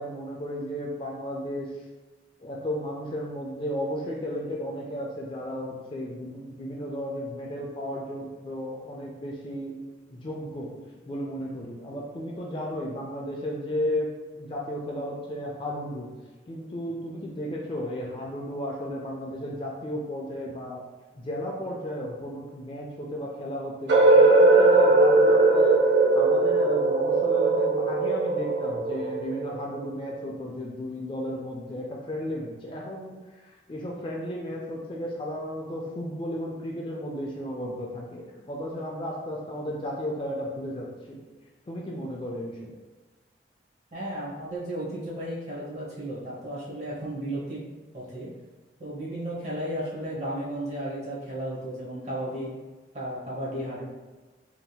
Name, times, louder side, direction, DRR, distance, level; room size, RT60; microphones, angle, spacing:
voice 1, 0.0-1.7 2.4-9.7 10.1-10.7 11.1-16.1 16.5-20.8 21.2-33.2 33.4-41.2 41.7-42.8, equal, 25° left, -2 dB, 0.3 m, -34 dB
sound 1, 23.9-29.8, right 3 dB, 70° right, 0.6 m, -20 dB
voice 2, 43.9-47.6 47.9-48.3 48.8-52.5 52.9-53.8, right 1 dB, 40° right, -6 dB, 0.9 m, -34 dB
3.4 x 2.7 x 2.3 m, 1.2 s
head